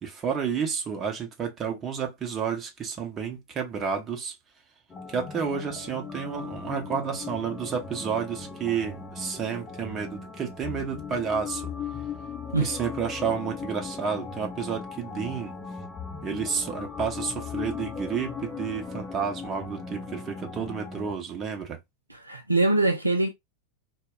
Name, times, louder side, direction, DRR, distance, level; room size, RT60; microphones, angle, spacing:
voice 1, 0.0-4.4 5.1-11.7 12.6-15.5 16.2-21.8, right 6 dB, 25° right, 0.8 m, -31 dB
sound 1, 4.9-21.1, left 5 dB, 20° left, 0.6 m, -38 dB
voice 2, 22.1-23.3, right 2 dB, 85° right, 0.4 m, -23 dB
2.2 x 2.1 x 3.5 m
figure-of-eight pair, 90°, 0 cm